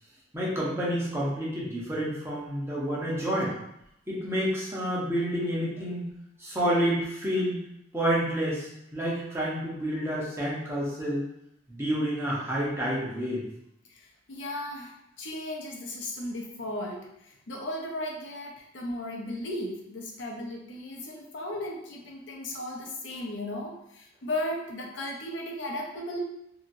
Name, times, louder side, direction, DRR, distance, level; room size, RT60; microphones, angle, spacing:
voice 1, 0.3-3.5 4.1-6.1 6.4-7.6 7.9-8.7 8.9-11.3 11.7-13.4, equal, 15° right, -7 dB, 0.9 m, -29 dB
voice 2, 13.9-26.2, left 1 dB, 75° left, -1 dB, 0.7 m, -36 dB
2.8 x 2.7 x 2.6 m, 0.80 s
head